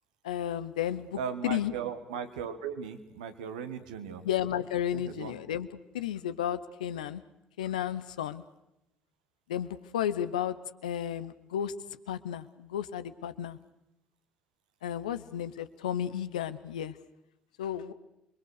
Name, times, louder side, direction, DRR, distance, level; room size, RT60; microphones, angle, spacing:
voice 1, 0.2-1.7 4.2-5.7 5.9-7.2 7.6-8.4 9.5-10.6 10.8-11.7 12.1-13.6 14.8-16.9 17.6-17.9, left 10 dB, 85° left, 13 dB, 0.8 m, -33 dB
voice 2, 1.2-4.2 4.9-5.3, right 7 dB, 80° right, 8 dB, 1.5 m, -37 dB
28.0 x 23.0 x 6.5 m, 0.87 s
hypercardioid pair, 50°, 4 cm